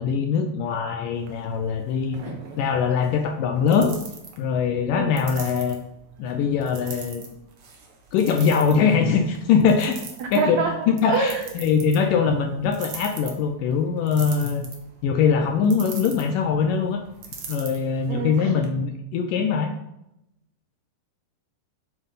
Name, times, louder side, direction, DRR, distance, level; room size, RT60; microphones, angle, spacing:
voice 1, 0.0-4.0 4.4-5.8 6.2-7.2 8.1-10.0 10.3-14.7 15.0-17.0 17.5-19.7, left 6 dB, 80° left, 5 dB, 2.0 m, -22 dB
sound 1, 1.1-18.7, right 5 dB, 60° right, 1.5 m, -43 dB
voice 2, 10.2-10.7 11.0-11.5 18.1-18.5, right 5 dB, 80° right, 3 dB, 1.5 m, -25 dB
8.0 x 7.8 x 5.7 m, 0.84 s
omnidirectional pair, 4.5 m